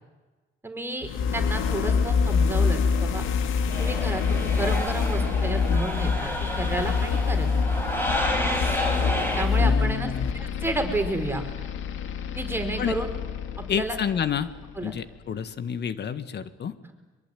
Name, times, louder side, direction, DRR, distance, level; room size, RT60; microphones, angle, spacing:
voice 1, 0.6-3.2 3.8-7.5 9.3-10.1 10.4-11.4 12.3-13.1 13.7-13.9 14.8-14.9 16.8-16.9, right 2 dB, 10° right, 4 dB, 4.9 m, -31 dB
sound 1, 1.0-14.9, left 5 dB, 85° left, 1.9 m, -26 dB
sound 2, 3.7-9.5, left 1 dB, 10° left, 6.4 m, -30 dB
voice 2, 9.6-10.3 12.8-13.0 13.7-14.5 14.8-16.7, left 8 dB, 60° left, 12 dB, 1.7 m, -29 dB
23.5 x 23.0 x 9.3 m, 1.2 s
cardioid pair, 90°, 20 cm